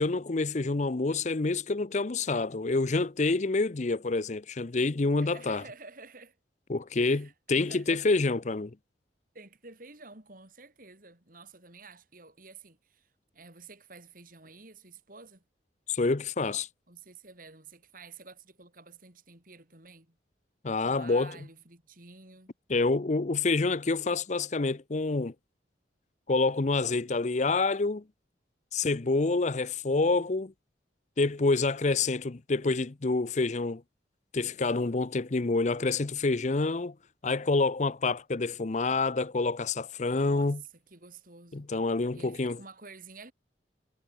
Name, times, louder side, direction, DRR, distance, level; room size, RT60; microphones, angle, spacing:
voice 1, 0.0-5.6 6.7-8.7 15.9-16.7 20.6-21.4 22.7-25.3 26.3-28.0 28.7-30.5 31.2-33.8 34.3-36.9 37.2-40.6 41.5-42.6, left 3 dB, 40° left, 0.6 m, -27 dB
voice 2, 5.3-6.4 7.0-8.2 9.3-15.4 16.9-20.2 20.8-22.5 40.1-41.7 42.1-43.3, right 4 dB, 50° right, 6.6 m, -50 dB
head